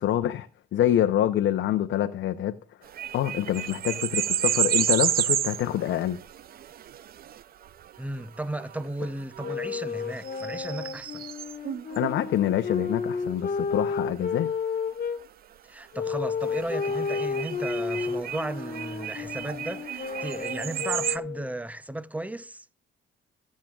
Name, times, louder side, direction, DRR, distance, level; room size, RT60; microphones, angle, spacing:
voice 1, 0.0-2.5 3.1-6.2 12.0-14.5, left 11 dB, 70° left, 0.6 m, -26 dB
sound 1, 2.8-12.1 16.4-21.2, right 10 dB, 50° right, 0.4 m, -31 dB
voice 2, 8.0-11.2 15.7-22.6, right 1 dB, 5° right, 0.6 m, -35 dB
sound 2, 9.4-15.2 15.9-21.6, left 5 dB, 45° left, 1.6 m, -32 dB
21.5 x 7.4 x 2.3 m
cardioid pair, 90°, 20 cm